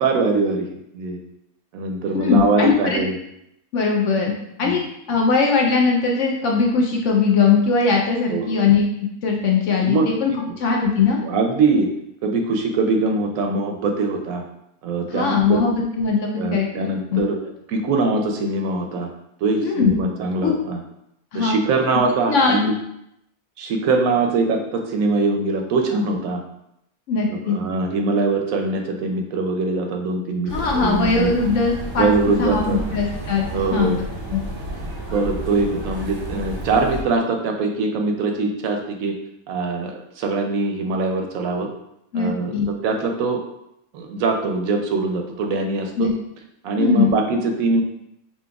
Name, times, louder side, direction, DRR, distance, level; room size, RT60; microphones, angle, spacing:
voice 1, 0.0-0.7 0.9-1.2 1.7-3.1 4.6-4.8 8.3-8.6 9.8-10.4 11.2-11.9 12.2-14.4 14.8-15.6 16.3-17.4 17.7-19.1 19.4-20.8 21.3-22.7 23.6-26.4 27.3-31.3 32.0-33.0 33.5-34.0 35.1-39.2 39.5-41.7 42.1-42.5 42.8-43.4 43.9-46.1 46.6-47.8, right 3 dB, 75° right, 3 dB, 0.9 m, -22 dB
voice 2, 2.2-3.0 3.7-4.3 4.6-4.8 5.1-8.8 9.2-11.2 15.1-17.2 19.6-20.1 20.4-20.5 21.3-21.6 22.3-22.6 27.1-27.6 30.5-32.1 32.4-33.4 33.7-33.9 34.3-34.4 42.1-42.7 46.0-46.1 46.8-47.2, left 5 dB, 65° left, 0 dB, 0.8 m, -20 dB
sound 1, 30.5-37.0, right 1 dB, 40° right, 0.4 m, -31 dB
5.1 x 2.9 x 2.3 m, 0.80 s
omnidirectional pair, 1.6 m